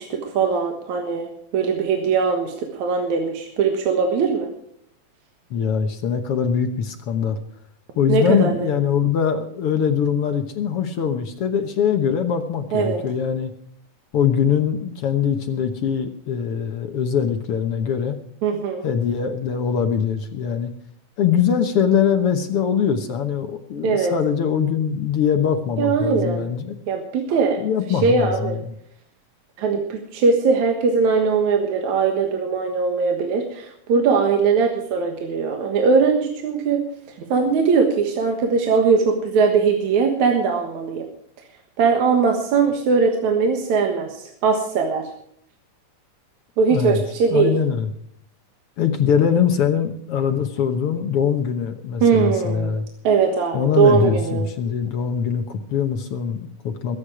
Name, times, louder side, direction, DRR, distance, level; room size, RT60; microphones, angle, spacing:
voice 1, 0.0-4.5 8.1-8.7 12.7-13.0 18.4-18.8 23.8-24.1 25.8-26.5 26.9-27.6 27.9-28.6 29.6-36.8 37.3-41.0 41.8-45.1 46.6-47.5 52.0-52.8 53.0-54.5, right 5 dB, 65° right, 3 dB, 2.7 m, -20 dB
voice 2, 5.5-7.4 7.9-13.5 14.1-18.2 18.8-20.7 21.2-26.7 27.6-28.7 46.7-47.0 47.3-47.9 48.8-52.8 53.5-57.0, left 7 dB, 60° left, 7 dB, 1.5 m, -22 dB
21.5 x 9.5 x 4.9 m, 0.66 s
omnidirectional pair, 3.8 m